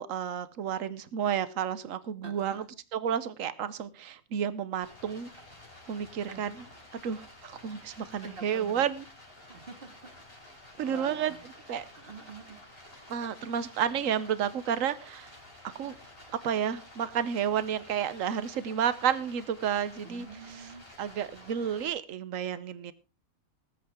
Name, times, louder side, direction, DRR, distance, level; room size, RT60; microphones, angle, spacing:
voice 1, 0.0-2.6 2.9-5.3 5.9-6.6 7.0-9.0 10.8-11.3 11.7-11.8 13.1-15.3 15.7-16.0 16.4-20.3 20.6-20.7 21.0-22.9, right 8 dB, 75° right, 15 dB, 1.3 m, -31 dB
voice 2, 2.2-2.7 6.3-6.6 8.2-8.8 9.5-10.1 10.5-11.4 11.9-12.6 20.0-20.9, right 4 dB, 40° right, 7 dB, 2.2 m, -46 dB
Stream, 4.8-21.9, left 1 dB, 45° left, 4.3 m, -52 dB
20.0 x 8.6 x 3.7 m, 0.30 s
omnidirectional pair, 1.4 m